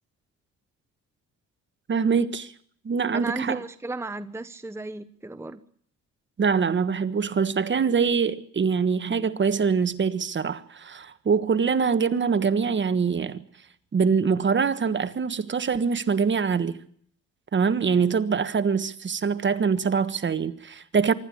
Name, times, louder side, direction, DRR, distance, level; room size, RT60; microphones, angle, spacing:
voice 1, 1.9-2.5 2.8-3.6 6.4-13.4 13.9-16.8 17.5-21.1, right 5 dB, 40° right, 1.4 m, -24 dB
voice 2, 3.1-5.6, right 2 dB, 10° right, 0.9 m, -34 dB
25.0 x 12.5 x 8.6 m
cardioid pair, 90°, 30 cm